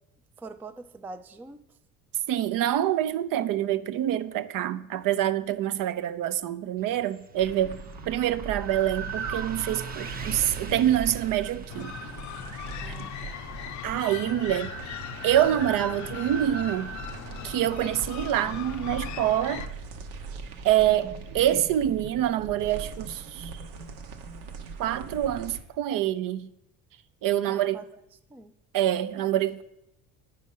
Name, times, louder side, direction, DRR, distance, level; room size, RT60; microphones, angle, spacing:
voice 1, 0.4-1.6 12.8-13.4 27.5-27.9 28.3-28.5, right 3 dB, 5° right, 0.3 m, -44 dB
voice 2, 2.3-7.8 8.1-11.9 12.9-13.0 13.8-15.0 15.2-16.9 17.4-19.7 20.6-23.5 24.8-26.5 27.2-27.8 28.7-29.6, right 12 dB, 55° right, 0.5 m, -26 dB
Motorcycle, 6.8-17.9, right 5 dB, 25° right, 0.8 m, -47 dB
sound 1, 7.4-25.6, right 5 dB, 80° right, 1.0 m, -39 dB
sound 2, 11.7-19.7, left 11 dB, 45° left, 0.5 m, -39 dB
9.2 x 5.4 x 5.4 m
supercardioid pair, 75°, 39 cm